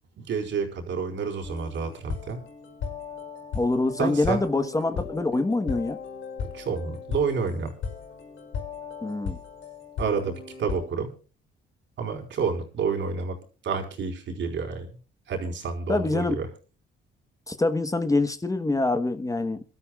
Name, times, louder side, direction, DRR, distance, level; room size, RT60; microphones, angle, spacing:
voice 1, 0.2-2.4 4.0-4.4 6.5-7.7 10.0-11.1 12.0-13.3 13.6-14.9 15.3-16.5, right 5 dB, 70° right, 4.2 m, -29 dB
sound 1, 1.4-10.9, left 5 dB, 80° left, 6.0 m, -37 dB
voice 2, 3.5-6.0 9.0-9.4 15.9-16.4 17.5-19.6, left 2 dB, 15° left, 1.2 m, -25 dB
28.0 x 12.5 x 2.4 m
cardioid pair, 90°, 20 cm